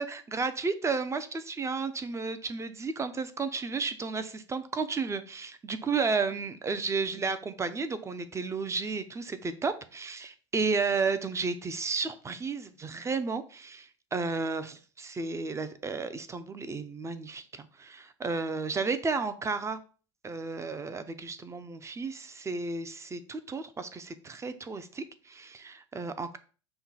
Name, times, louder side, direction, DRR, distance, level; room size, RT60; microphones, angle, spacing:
voice 1, 0.0-19.8 20.2-26.4, right 4 dB, 20° right, 11 dB, 0.6 m, -33 dB
5.7 x 2.2 x 4.1 m, 0.38 s
hypercardioid pair, 95°, 16 cm